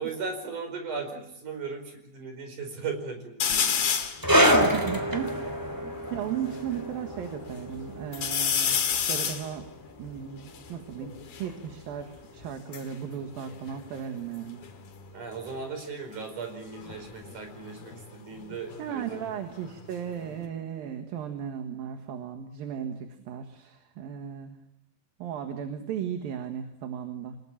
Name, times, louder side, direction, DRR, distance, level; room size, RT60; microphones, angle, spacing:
voice 1, 0.0-3.9 15.1-19.3, right 5 dB, 55° right, 6 dB, 6.3 m, -37 dB
sound 1, 3.4-4.2 4.8-4.9 5.1-6.6 7.1-7.7 8.1-11.5 12.4-14.4 14.6-15.1 16.7-19.3 19.7-20.5, left 7 dB, 65° left, 3.8 m, -31 dB
sound 2, 4.2-11.2 11.5-11.7 12.4-12.5, equal, 5° right, 2.5 m, -27 dB
voice 2, 4.5-5.6 6.1-8.8 9.1-9.6 10.0-11.1 11.4-14.6 18.8-24.6 25.2-27.4, right 9 dB, 70° right, 5 dB, 3.4 m, -35 dB
28.5 x 20.0 x 9.0 m, 0.78 s
omnidirectional pair, 4.4 m